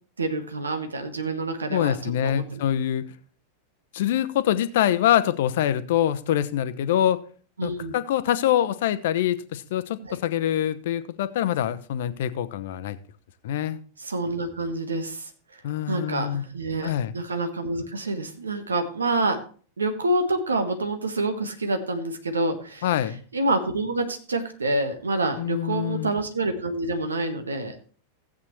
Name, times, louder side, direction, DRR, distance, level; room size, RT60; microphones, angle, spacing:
voice 1, 0.2-2.6 7.6-7.9 10.0-10.2 14.0-15.3 15.9-19.4 19.8-22.8 23.3-27.7, right 2 dB, 75° right, 8 dB, 1.4 m, -27 dB
voice 2, 1.7-3.1 3.9-7.2 7.6-13.0 13.4-13.8 15.6-16.5 16.8-17.1 22.8-23.2 25.4-26.1, left 11 dB, 55° left, 13 dB, 0.8 m, -25 dB
15.5 x 8.3 x 3.2 m, 0.41 s
figure-of-eight pair, 90°, 0 cm